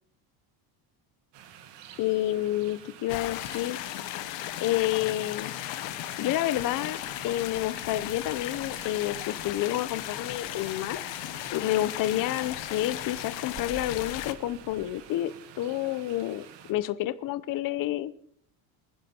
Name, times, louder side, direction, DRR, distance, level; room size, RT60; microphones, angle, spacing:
sound 1, 1.3-16.7, right 9 dB, 60° right, 1.8 m, -50 dB
voice 1, 2.0-3.8 4.5-5.5 6.2-11.0 11.5-18.1, left 14 dB, 45° left, 14 dB, 0.8 m, -29 dB
sound 2, 3.1-14.3, left 16 dB, 70° left, 1.0 m, -36 dB
sound 3, 7.1-15.0, right 6 dB, 35° right, 1.4 m, -53 dB
25.5 x 10.5 x 4.4 m, 0.67 s
cardioid pair, 150°, 47 cm